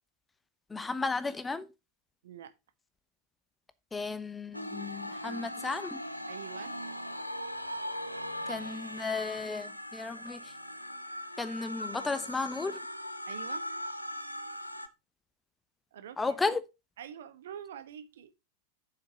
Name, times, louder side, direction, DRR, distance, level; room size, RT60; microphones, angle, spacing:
voice 1, 0.7-1.7 3.9-6.0 8.5-10.5 11.4-12.8 16.2-16.6, left 3 dB, 10° left, 0.7 m, -34 dB
sound 1, 4.5-14.9, equal, 90° left, 0.7 m, -39 dB
voice 2, 6.3-6.8 13.2-13.7 15.9-16.2 17.0-18.3, right 9 dB, 60° right, 1.0 m, -45 dB
7.7 x 5.9 x 4.7 m
figure-of-eight pair, 90°, 0 cm